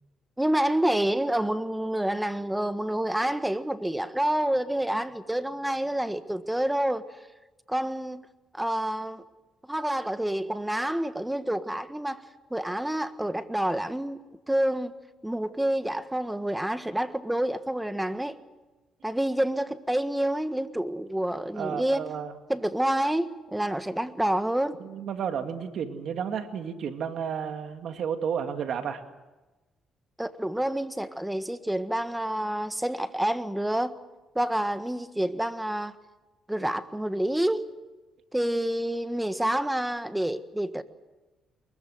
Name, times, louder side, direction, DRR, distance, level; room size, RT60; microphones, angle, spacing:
voice 1, 0.4-7.0 7.7-8.2 8.5-9.2 9.7-12.2 12.5-14.2 14.5-14.9 15.2-18.4 19.0-22.1 22.5-24.8 30.2-33.9 34.3-35.9 36.5-37.7 38.3-40.8, right 1 dB, 5° right, 1.5 m, -28 dB
voice 2, 21.6-22.3 24.8-29.0, right 7 dB, 65° right, 2.3 m, -32 dB
23.5 x 22.0 x 7.9 m
cardioid pair, 90°, 0 cm